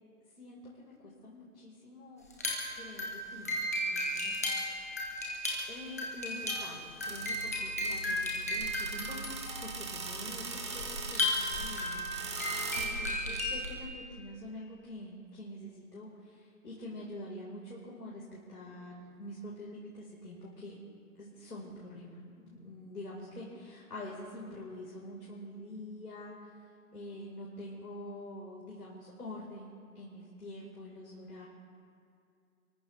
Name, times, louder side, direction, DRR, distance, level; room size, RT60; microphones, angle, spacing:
voice 1, 0.4-2.2 2.7-5.2 5.7-18.2 18.5-20.7 21.2-31.5, left 1 dB, 85° left, -5 dB, 4.7 m, -46 dB
sound 1, 2.3-13.8, left 1 dB, 10° left, 0.8 m, -35 dB
sound 2, 7.0-13.9, right 4 dB, 20° right, 1.0 m, -41 dB
29.0 x 14.5 x 3.4 m, 2.4 s
hypercardioid pair, 165°, 46 cm